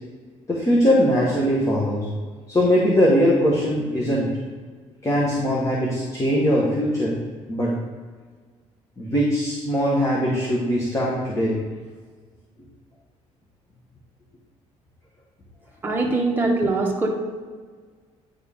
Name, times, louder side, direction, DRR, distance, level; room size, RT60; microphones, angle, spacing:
voice 1, 0.5-2.1 2.5-4.3 5.0-7.2 7.5-7.7 9.0-11.6 16.4-16.6, equal, 25° left, -4 dB, 1.5 m, -21 dB
voice 2, 15.8-17.1, right 3 dB, 15° right, -2 dB, 1.4 m, -23 dB
9.8 x 4.6 x 3.7 m, 1.5 s
cardioid pair, 105°, 13 cm